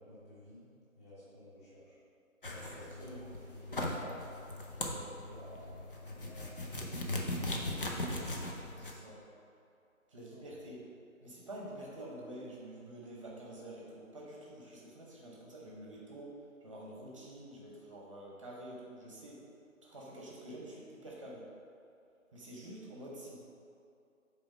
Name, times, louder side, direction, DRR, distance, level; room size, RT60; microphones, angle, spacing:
voice 1, 0.0-1.9 2.5-3.2 3.5-4.2 4.7-5.8 6.0-8.3 10.3-10.6, equal, 10° left, -12 dB, 1.3 m, -53 dB
sound 1, 2.4-8.9, left 1 dB, 40° left, 0.8 m, -39 dB
voice 2, 2.8-3.3 8.8-9.2 10.1-10.8 11.2-19.4 19.8-21.5 22.3-23.4, right 1 dB, 20° right, -4 dB, 1.1 m, -48 dB
7.1 x 4.5 x 5.1 m, 2.6 s
figure-of-eight pair, 160°, 42 cm